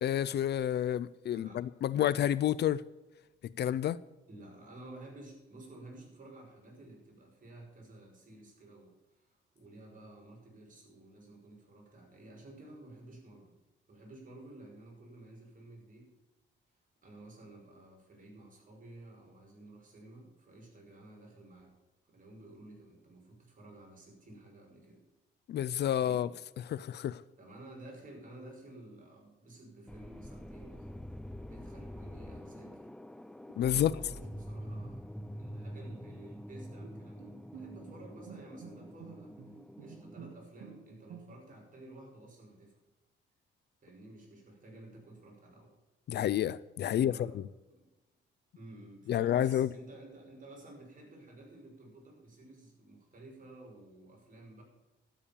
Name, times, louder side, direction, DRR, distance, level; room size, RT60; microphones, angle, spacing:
voice 1, 0.0-2.8 3.6-4.0 25.5-26.3 26.7-27.2 33.6-33.9 46.1-47.4 49.1-49.7, left 11 dB, 60° left, 0.5 m, -29 dB
voice 2, 1.3-1.6 4.3-13.6 13.9-16.2 17.0-21.8 22.1-25.0 26.0-26.3 27.4-31.1 31.4-32.9 33.6-35.0 35.4-39.3 39.8-42.8 43.8-45.7 46.9-47.3 47.7-47.8 48.6-54.6, right 2 dB, 40° right, 5.7 m, -52 dB
sound 1, 29.9-40.3, equal, 5° left, 0.4 m, -46 dB
Bowed string instrument, 36.8-41.7, right 8 dB, 70° right, 1.2 m, -51 dB
12.5 x 8.5 x 7.1 m
cardioid pair, 90°, 20 cm